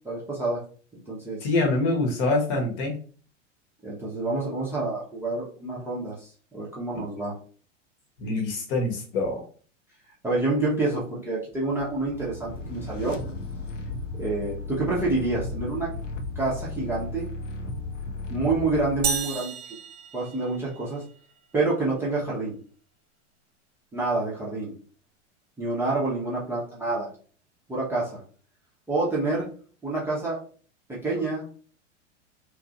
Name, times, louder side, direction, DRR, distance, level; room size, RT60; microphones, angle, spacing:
voice 1, 0.0-0.6 1.1-1.5 3.8-7.3 10.2-13.2 14.2-15.9 16.4-17.3 18.3-19.6 20.1-21.0 21.5-22.5 23.9-24.7 25.6-27.1 27.7-28.2 28.9-29.5 29.8-30.4 30.9-31.5, right 3 dB, 5° right, -7 dB, 0.6 m, -28 dB
voice 2, 1.4-3.0 6.9-7.0 8.2-9.4, left 2 dB, 45° left, 1 dB, 1.0 m, -25 dB
sound 1, 11.8-19.1, left 3 dB, 75° left, 0.6 m, -35 dB
sound 2, 19.0-21.0, right 5 dB, 55° right, 0.6 m, -32 dB
2.9 x 2.4 x 2.4 m, 0.42 s
figure-of-eight pair, 90°, 37 cm